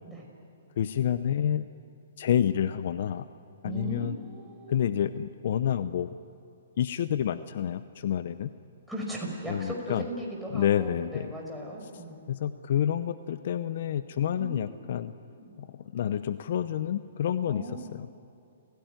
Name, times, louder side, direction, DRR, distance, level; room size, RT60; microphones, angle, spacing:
voice 1, 0.8-1.7 2.2-3.2 3.6-4.2 4.7-6.2 6.8-8.5 9.5-10.0 10.5-11.3 12.3-15.1 15.6-18.1, left 9 dB, 55° left, 12 dB, 0.8 m, -28 dB
voice 2, 3.6-4.9 8.9-12.3 14.4-14.7 15.2-15.5 17.5-17.8, right 1 dB, ahead, -3 dB, 5.6 m, -38 dB
29.5 x 16.5 x 9.3 m, 2.6 s
hypercardioid pair, 145°, 0 cm